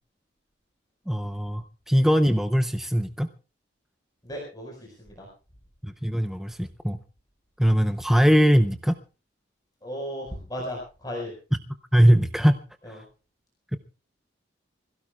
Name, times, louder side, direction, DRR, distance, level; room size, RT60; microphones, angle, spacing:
voice 1, 1.1-3.3 5.8-7.0 7.6-9.0 11.9-12.6 12.9-13.0 13.7-13.8, equal, ahead, 8 dB, 0.6 m, -21 dB
voice 2, 4.2-5.3 9.8-11.3 12.8-13.0, equal, 20° left, -2 dB, 4.9 m, -35 dB
26.0 x 16.5 x 2.3 m, 0.34 s
head